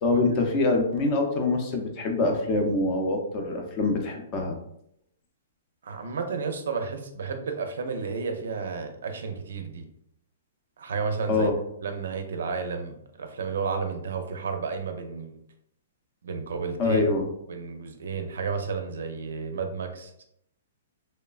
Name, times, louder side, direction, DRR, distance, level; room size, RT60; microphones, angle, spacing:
voice 1, 0.0-4.6 11.3-11.6 16.8-17.3, left 2 dB, 30° left, 3 dB, 0.5 m, -25 dB
voice 2, 5.8-9.9 10.8-11.5 11.8-15.4 16.2-17.0 17.5-20.2, right 5 dB, 80° right, 6 dB, 0.4 m, -32 dB
3.0 x 2.1 x 2.3 m, 0.75 s
hypercardioid pair, 155°, 0 cm